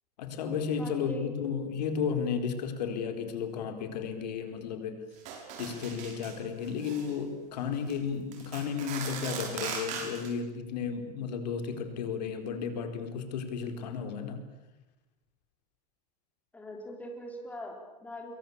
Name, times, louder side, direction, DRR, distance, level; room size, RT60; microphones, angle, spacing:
voice 1, 0.2-5.0 5.6-14.4, left 6 dB, 90° left, 7 dB, 4.4 m, -33 dB
voice 2, 0.8-1.3 16.5-18.4, left 1 dB, 5° left, 2 dB, 3.8 m, -42 dB
sound 1, 5.2-6.4 6.6-7.1 7.7-7.9 8.3-10.3, right 6 dB, 35° right, 6.2 m, -39 dB
25.5 x 22.5 x 8.7 m, 1.0 s
supercardioid pair, 165°, 21 cm